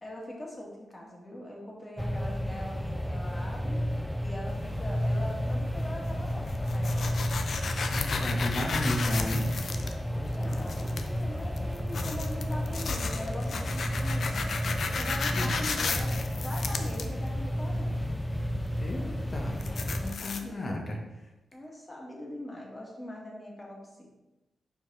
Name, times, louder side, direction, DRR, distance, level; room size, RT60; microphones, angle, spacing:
voice 1, 0.0-3.9 4.2-7.1 8.2-8.6 10.1-14.4 14.9-18.2 20.0-20.8 21.5-24.1, left 1 dB, 25° left, -2 dB, 2.2 m, -42 dB
sound 1, 2.0-20.1, equal, 5° left, 0.4 m, -32 dB
sound 2, 4.5-20.4, left 4 dB, 65° left, 0.6 m, -36 dB
voice 2, 7.8-9.4 15.3-15.5 18.8-21.0, left 1 dB, 40° left, 1 dB, 1.5 m, -34 dB
5.8 x 4.7 x 4.2 m, 0.99 s
cardioid pair, 55°, 0 cm